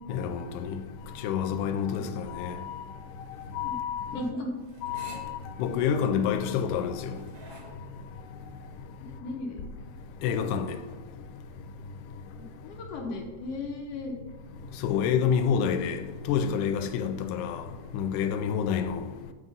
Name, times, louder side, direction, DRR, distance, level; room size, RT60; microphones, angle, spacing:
voice 1, 0.1-0.8 1.2-2.8 3.5-4.2 4.8-7.2 10.2-10.8 14.8-16.0 16.3-17.7 17.9-19.0, left 7 dB, 85° left, 2.1 m, -28 dB
sound 1, 2.3-7.7, right 3 dB, 60° right, 1.7 m, -51 dB
voice 2, 3.6-4.5 9.0-9.6 12.6-14.1, left 2 dB, 70° left, 1.6 m, -36 dB
8.4 x 3.6 x 5.4 m
omnidirectional pair, 3.6 m